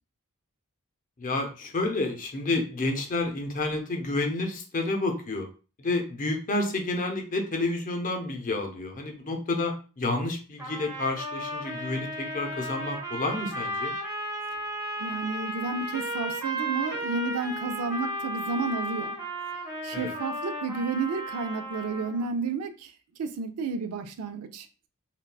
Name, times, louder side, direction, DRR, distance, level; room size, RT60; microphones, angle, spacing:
voice 1, 1.2-5.5 5.8-13.9 19.9-20.1, left 2 dB, 40° left, 0.6 m, -30 dB
sound 1, 10.6-22.3, right 1 dB, 15° right, 0.8 m, -34 dB
voice 2, 15.0-19.2 19.8-22.9 23.2-24.7, right 4 dB, 85° right, 0.4 m, -31 dB
3.8 x 2.2 x 2.3 m
head